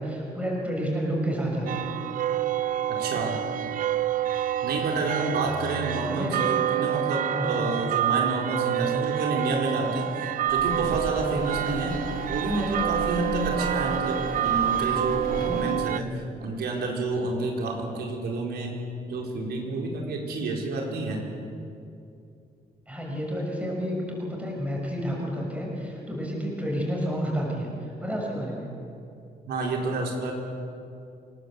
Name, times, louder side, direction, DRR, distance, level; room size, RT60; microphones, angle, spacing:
voice 1, 0.0-1.9 6.0-6.4 7.3-7.7 22.9-27.7 28.0-28.7, equal, 10° right, -2 dB, 6.2 m, -30 dB
sound 1, 1.7-16.0, right 11 dB, 55° right, 0.7 m, -28 dB
voice 2, 2.9-3.4 4.6-10.1 10.5-12.0 12.3-18.8 19.1-21.3 29.5-30.3, right 2 dB, 80° right, 0 dB, 4.2 m, -29 dB
sound 2, 10.4-15.7, left 3 dB, 65° left, 4.4 m, -37 dB
27.0 x 19.0 x 8.1 m, 2.6 s
wide cardioid pair, 165°, 16 cm